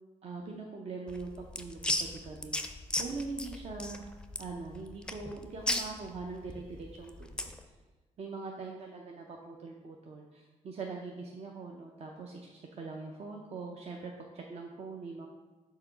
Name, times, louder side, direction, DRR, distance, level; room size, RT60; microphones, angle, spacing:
voice 1, 0.2-4.1 4.4-7.5 8.2-15.3, right 4 dB, 55° right, 0 dB, 0.6 m, -42 dB
sound 1, 1.1-7.6, left 1 dB, 5° left, 0.5 m, -36 dB
4.8 x 3.9 x 5.5 m, 1.2 s
cardioid pair, 90°, 13 cm